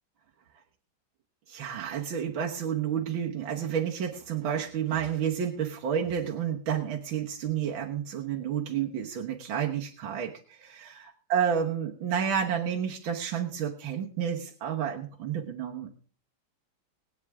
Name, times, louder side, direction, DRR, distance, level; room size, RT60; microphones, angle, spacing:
voice 1, 1.5-15.9, right 8 dB, 70° right, 0 dB, 2.0 m, -30 dB
21.0 x 9.1 x 3.6 m, 0.41 s
omnidirectional pair, 2.3 m